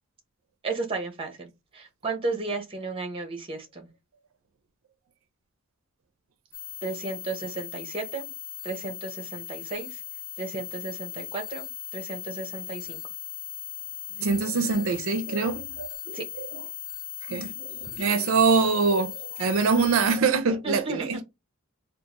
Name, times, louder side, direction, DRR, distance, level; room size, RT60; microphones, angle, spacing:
voice 1, 0.6-3.9 6.8-8.3 8.6-10.0 10.4-13.0 16.1-16.2 20.6-21.1, right 3 dB, 25° right, 0.8 m, -34 dB
sound 1, 6.5-20.2, left 12 dB, 40° left, 0.7 m, -38 dB
voice 2, 14.2-16.5 17.3-21.2, right 4 dB, 70° right, 0.4 m, -24 dB
3.6 x 2.4 x 3.0 m
head